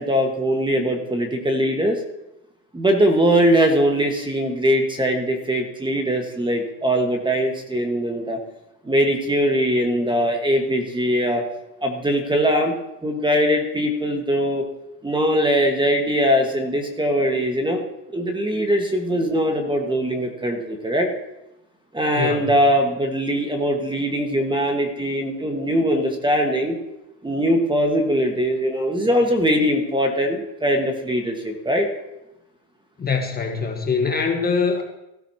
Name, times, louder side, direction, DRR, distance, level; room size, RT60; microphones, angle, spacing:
voice 1, 0.0-2.0 2.7-8.4 8.8-11.4 11.8-12.8 13.0-14.6 15.0-17.8 18.1-21.1 21.9-26.8 27.2-31.9, equal, 10° right, 3 dB, 1.6 m, -21 dB
voice 2, 22.2-22.5 33.0-34.8, left 5 dB, 20° left, 2 dB, 1.5 m, -23 dB
15.5 x 13.0 x 2.9 m, 0.90 s
supercardioid pair, 120°, 49 cm